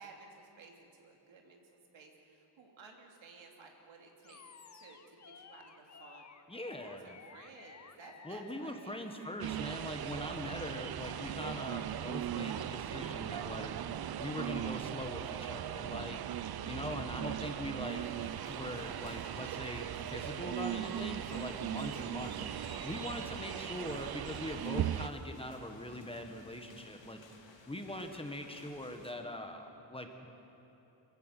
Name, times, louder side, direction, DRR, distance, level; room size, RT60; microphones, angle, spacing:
voice 1, 0.0-4.5 4.7-6.3 6.8-9.7, right 4 dB, 85° right, 1 dB, 2.9 m, -56 dB
Animal, 4.2-12.2, left 6 dB, 40° left, 0.9 m, -57 dB
voice 2, 6.5-7.1 8.2-13.7 14.2-16.2 16.6-18.0 18.5-22.5 22.8-27.2 27.7-30.3, left 1 dB, 10° left, 5 dB, 1.3 m, -42 dB
sound 1, 9.4-25.1, right 11 dB, 55° right, 0.6 m, -38 dB
sound 2, 17.9-29.1, left 3 dB, 85° left, 2.6 m, -57 dB
24.5 x 15.5 x 8.1 m, 3.0 s
wide cardioid pair, 155°, 45 cm